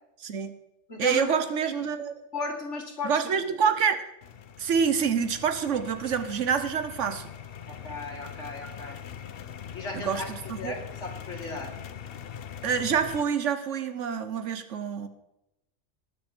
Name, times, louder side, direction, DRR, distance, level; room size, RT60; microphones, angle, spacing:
voice 1, 0.2-0.5 1.0-2.1 3.0-4.0 4.6-7.3 9.9-10.7 12.6-15.1, right 7 dB, 90° right, 10 dB, 1.3 m, -27 dB
voice 2, 0.9-1.7 2.3-3.7 7.7-9.0 9.7-10.3 10.6-11.7, left 3 dB, 75° left, 1 dB, 2.5 m, -36 dB
sound 1, 4.2-13.2, left 8 dB, 60° left, 0.8 m, -42 dB
19.5 x 6.6 x 4.4 m, 0.87 s
omnidirectional pair, 1.2 m